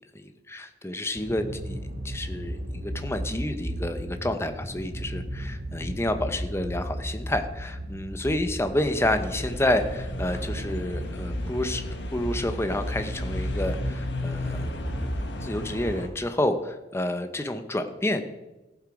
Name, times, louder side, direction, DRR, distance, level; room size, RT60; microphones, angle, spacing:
voice 1, 0.1-1.8 2.0-11.8 12.1-14.7 15.4-18.2, left 1 dB, 15° left, 8 dB, 0.8 m, -29 dB
sound 1, 1.1-16.0, equal, 55° right, 1.7 m, -35 dB
sound 2, 8.8-16.1, left 1 dB, 75° left, 1.3 m, -34 dB
15.0 x 7.8 x 4.8 m, 1.1 s
head